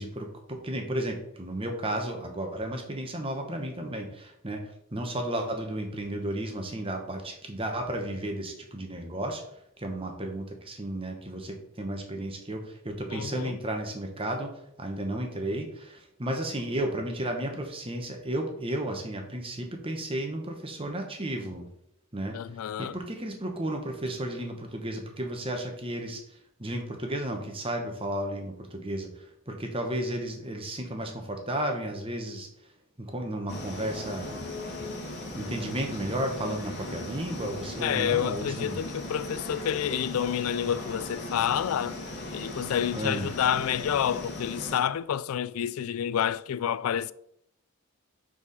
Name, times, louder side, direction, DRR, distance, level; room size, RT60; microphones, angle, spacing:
voice 1, 0.0-9.4 9.8-14.5 14.8-21.7 22.1-22.4 22.8-29.1 29.5-32.5 33.0-34.4 35.3-38.8 42.9-43.3, right 1 dB, 25° right, 1.3 m, -33 dB
voice 2, 13.1-13.6 22.3-23.0 37.8-42.0 42.3-47.1, left 9 dB, 80° left, 0.3 m, -29 dB
sound 1, 33.5-44.8, left 1 dB, 50° left, 1.6 m, -38 dB
6.2 x 4.8 x 5.5 m
head